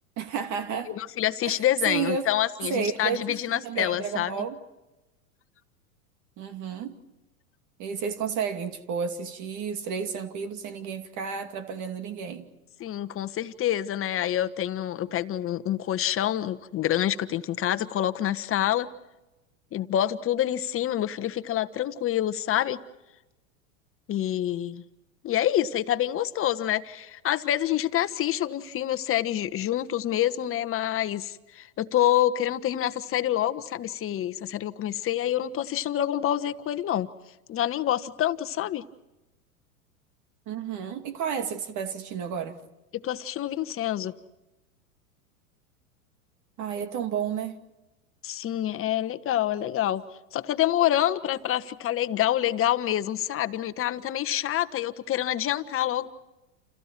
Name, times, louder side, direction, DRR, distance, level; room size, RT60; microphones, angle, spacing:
voice 1, 0.2-0.9 1.4-1.6 1.8-2.2 2.6-4.6 6.4-7.0 7.8-12.5 40.5-42.6 46.6-47.6, right 7 dB, 45° right, 2.4 m, -31 dB
voice 2, 0.9-4.4 12.8-18.9 19.7-22.8 24.1-24.8 25.2-37.1 37.5-38.8 42.9-44.1 48.2-50.0 50.3-56.1, left 12 dB, 30° left, 1.4 m, -27 dB
29.5 x 28.5 x 4.6 m
hypercardioid pair, 100°, 42 cm